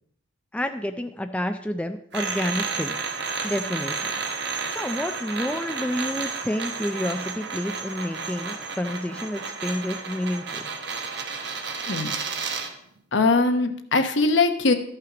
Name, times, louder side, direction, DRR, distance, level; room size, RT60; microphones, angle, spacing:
voice 1, 0.5-4.1 4.4-10.7, left 1 dB, 5° left, 6 dB, 0.3 m, -30 dB
sound 1, 2.1-12.8, right 5 dB, 55° right, 1.1 m, -32 dB
voice 2, 13.1-14.7, left 3 dB, 60° left, 8 dB, 0.9 m, -21 dB
13.0 x 5.8 x 4.9 m, 0.70 s
head